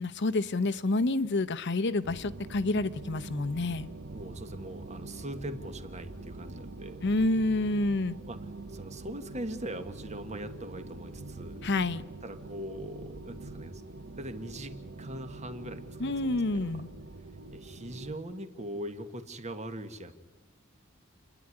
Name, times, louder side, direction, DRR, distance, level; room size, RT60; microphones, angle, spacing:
voice 1, 0.0-3.9 7.0-8.2 11.6-12.0 16.0-16.9, left 2 dB, 55° left, 14 dB, 0.8 m, -28 dB
sound 1, 2.0-18.1, right 2 dB, 55° right, 0.9 m, -44 dB
voice 2, 4.1-7.1 8.1-8.4 8.7-11.7 12.2-13.8 14.2-16.8 17.5-20.1, right 1 dB, 35° right, 8 dB, 1.5 m, -41 dB
29.0 x 11.0 x 9.9 m, 1.1 s
head